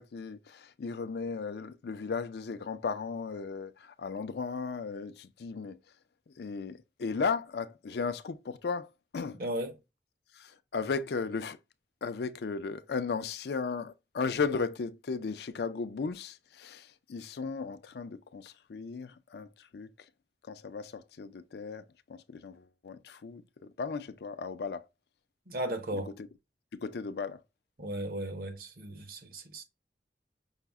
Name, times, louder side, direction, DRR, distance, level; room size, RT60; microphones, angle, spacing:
voice 1, 0.0-5.8 6.4-8.9 9.1-9.4 10.3-11.6 12.0-19.9 20.5-21.8 22.1-23.4 23.8-24.8 26.2-26.3 26.7-27.4, left 5 dB, 65° left, 0.4 m, -35 dB
voice 2, 9.4-9.8 25.5-26.1 27.8-29.6, right 1 dB, 55° right, 0.9 m, -36 dB
5.6 x 2.1 x 3.5 m
head